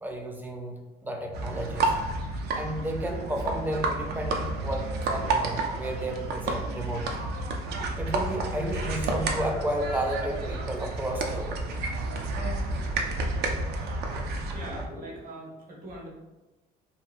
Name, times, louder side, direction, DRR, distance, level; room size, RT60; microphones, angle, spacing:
voice 1, 0.0-0.7 1.0-1.9 2.5-7.2 7.9-11.6, right 1 dB, 10° right, 2 dB, 0.4 m, -32 dB
sound 1, 1.3-14.9, right 2 dB, 75° right, 0.4 m, -30 dB
voice 2, 14.2-16.1, right 1 dB, 55° right, -4 dB, 0.9 m, -42 dB
2.8 x 2.3 x 2.5 m, 1.1 s
cardioid pair, 110°, 17 cm